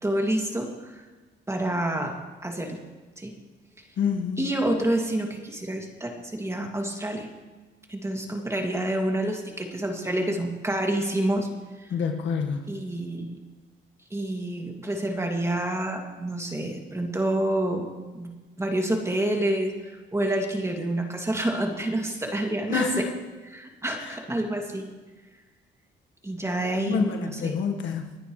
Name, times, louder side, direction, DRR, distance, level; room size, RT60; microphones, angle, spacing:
voice 1, 0.0-1.1 1.5-2.1 2.4-2.8 3.2-3.3 4.4-7.3 7.9-11.5 11.8-11.9 12.7-13.3 14.1-17.9 18.1-18.3 18.6-23.1 23.5-24.9 26.2-27.6, right 1 dB, 15° right, 2 dB, 2.5 m, -28 dB
voice 2, 4.0-4.5 11.9-12.6 22.7-23.0 26.9-28.2, left 6 dB, 70° left, 4 dB, 1.7 m, -27 dB
29.5 x 9.9 x 3.3 m, 1.3 s
cardioid pair, 90°, 20 cm